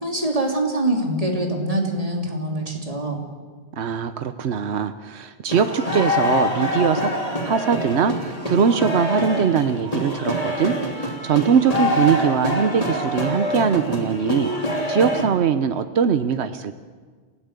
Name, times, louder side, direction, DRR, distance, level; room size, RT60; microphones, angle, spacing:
voice 1, 0.0-3.2, right 1 dB, 35° right, 1 dB, 3.4 m, -24 dB
voice 2, 3.8-7.1 7.4-14.5 14.9-16.7, right 7 dB, 90° right, 10 dB, 1.1 m, -21 dB
sound 1, 5.5-15.2, equal, 35° left, 3.3 m, -25 dB
28.0 x 16.5 x 8.2 m, 1.6 s
omnidirectional pair, 1.1 m